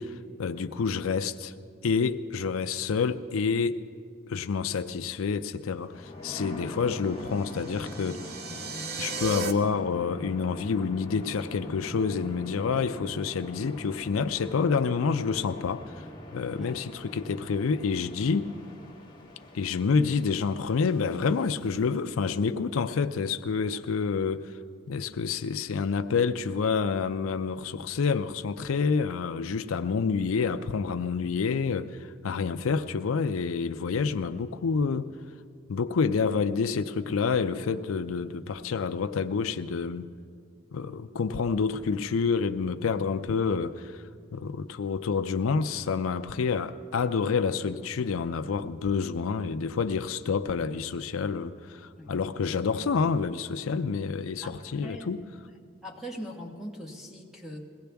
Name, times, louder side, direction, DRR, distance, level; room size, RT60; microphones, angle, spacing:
voice 1, 0.0-1.5 1.8-3.8 4.3-8.3 9.0-16.1 16.3-18.5 19.5-24.5 24.9-35.1 35.7-40.1 40.7-44.0 44.3-55.2, left 5 dB, 85° left, 0.5 m, -28 dB
sound 1, 5.8-21.8, left 1 dB, 20° left, 1.2 m, -43 dB
sound 2, 6.9-9.5, right 3 dB, 50° right, 0.8 m, -36 dB
voice 2, 16.5-16.9 52.0-52.1 54.4-55.1 55.4-55.5 55.8-57.6, equal, ahead, 1.3 m, -41 dB
21.5 x 16.5 x 3.5 m
head